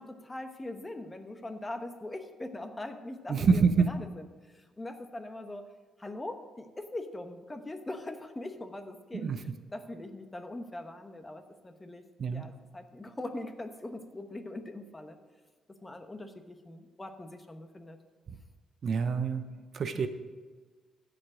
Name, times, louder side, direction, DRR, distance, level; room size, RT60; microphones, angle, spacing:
voice 1, 0.0-5.7 6.0-12.0 12.3-15.2 15.7-18.0, left 1 dB, 20° left, 7 dB, 1.0 m, -42 dB
voice 2, 3.3-3.9 9.1-9.4 12.2-12.5 18.8-19.5 19.7-20.1, right 5 dB, 50° right, 9 dB, 0.7 m, -26 dB
15.0 x 5.1 x 4.9 m, 1.4 s
cardioid pair, 90°, 0 cm